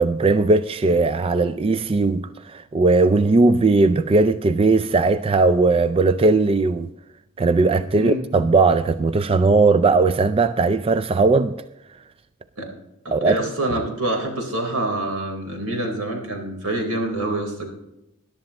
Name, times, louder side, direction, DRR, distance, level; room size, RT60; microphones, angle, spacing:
voice 1, 0.0-6.9 7.4-11.5 13.1-13.4 13.7-13.8, right 3 dB, 25° right, 0.3 m, -18 dB
voice 2, 13.0-17.7, right 1 dB, 80° right, 3.8 m, -26 dB
20.5 x 11.5 x 2.9 m
head